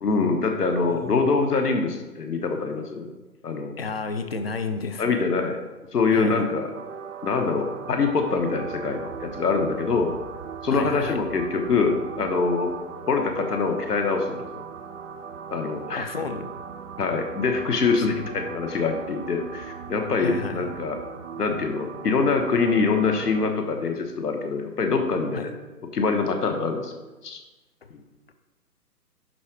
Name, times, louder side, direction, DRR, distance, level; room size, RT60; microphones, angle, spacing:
voice 1, 0.0-3.1 3.4-3.7 5.0-5.6 5.9-6.7 7.2-10.1 10.6-12.7 13.1-14.6 15.5-16.1 17.0-21.0 21.4-25.5 25.9-26.9 27.2-27.4 27.9-28.0, left 4 dB, 70° left, 4 dB, 1.4 m, -24 dB
voice 2, 0.9-1.4 3.8-5.2 6.1-6.4 10.7-11.2 16.0-16.4 18.0-18.1 20.2-20.7 25.3-25.4, left 4 dB, 40° left, 8 dB, 0.6 m, -32 dB
sound 1, 6.7-23.5, right 7 dB, 50° right, 0.6 m, -38 dB
11.0 x 3.9 x 4.8 m, 1.2 s
figure-of-eight pair, 150°, 49 cm